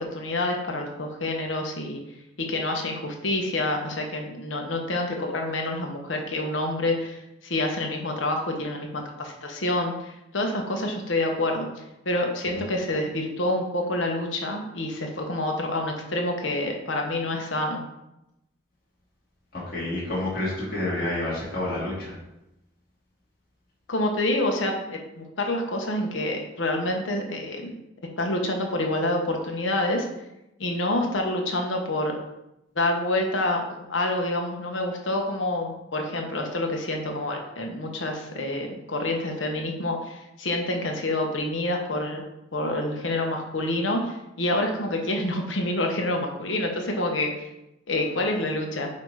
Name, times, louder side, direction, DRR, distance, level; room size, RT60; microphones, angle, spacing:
voice 1, 0.0-2.0 2.4-11.7 12.0-17.8 23.9-27.7 28.2-30.1 30.6-32.1 32.7-33.6 33.9-42.2 42.5-47.5 47.9-48.9, left 1 dB, 90° left, 2 dB, 1.1 m, -27 dB
voice 2, 19.5-22.2, left 1 dB, 50° left, -7 dB, 2.5 m, -29 dB
8.5 x 2.9 x 4.8 m, 0.89 s
head